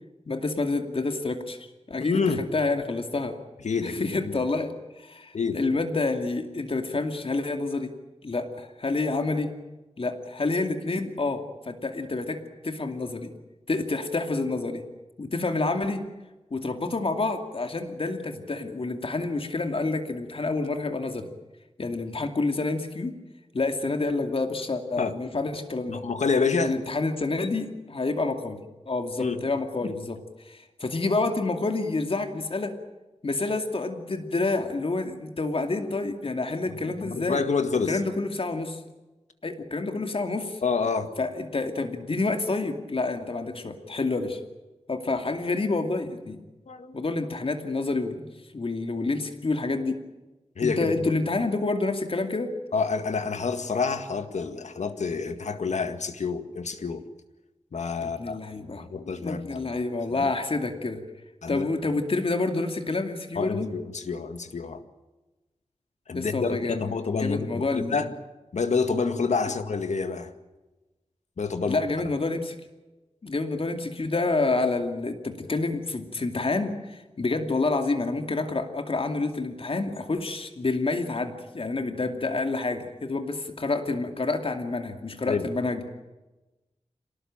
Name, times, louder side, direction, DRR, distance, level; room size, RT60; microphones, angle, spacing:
voice 1, 0.3-1.6 1.9-2.3 2.5-3.4 4.0-7.9 8.2-9.5 10.0-13.3 13.7-14.8 15.2-16.0 16.5-21.3 21.8-23.2 23.5-26.0 26.6-28.6 28.9-32.7 33.2-37.4 37.9-38.8 39.4-40.6 41.2-44.4 44.9-46.4 46.9-50.0 50.6-52.6 58.0-58.8 59.2-61.0 61.5-63.7 66.1-66.9 67.2-68.0 69.5-69.6 71.7-72.6 73.2-85.8, left 3 dB, 55° left, 2.5 m, -28 dB
voice 2, 2.0-2.5 3.6-4.4 5.3-5.6 25.0-25.1 25.9-26.8 29.2-29.4 29.8-29.9 36.7-38.0 40.6-41.1 46.7-47.0 50.6-51.2 52.7-57.0 57.7-59.8 60.1-60.3 61.4-61.7 63.4-64.8 66.1-68.1 68.5-70.3 71.4-71.8 85.3-85.5, left 4 dB, 85° left, 2.0 m, -28 dB
26.5 x 18.5 x 8.9 m
wide cardioid pair, 100°, 12 cm